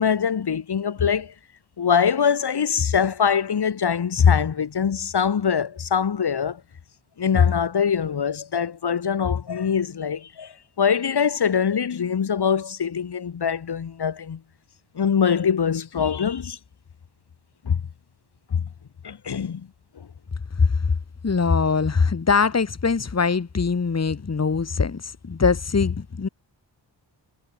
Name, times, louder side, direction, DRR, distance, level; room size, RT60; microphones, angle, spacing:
voice 1, 0.0-1.3 1.8-6.6 7.2-14.4 14.9-16.6 17.6-17.8 18.5-18.7 19.0-19.7 20.0-20.1, left 7 dB, 60° left, 5.0 m, -23 dB
voice 2, 21.2-26.3, left 5 dB, 35° left, 3.6 m, -22 dB
wide cardioid pair, 135°, 43 cm